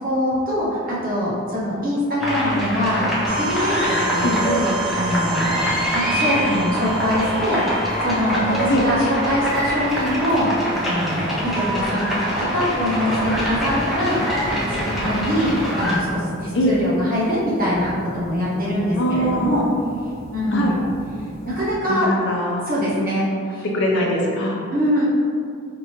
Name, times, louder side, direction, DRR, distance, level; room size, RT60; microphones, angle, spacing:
voice 1, 0.0-4.7 5.0-10.5 10.8-12.0 12.4-14.2 14.7-19.6 20.3-20.7 21.4-22.1 22.7-23.2 23.5-23.7 24.7-25.1, equal, 45° right, -8 dB, 1.1 m, -23 dB
sound 1, 2.2-16.0, equal, ahead, 0.5 m, -25 dB
sound 2, 3.3-11.0, right 1 dB, 85° right, 0.5 m, -31 dB
sound 3, 13.1-21.7, equal, 85° left, 1.2 m, -37 dB
voice 2, 19.0-19.8 20.5-20.8 21.9-22.6 23.7-24.6, equal, 60° left, -1 dB, 0.6 m, -22 dB
4.8 x 2.4 x 3.0 m, 2.3 s
head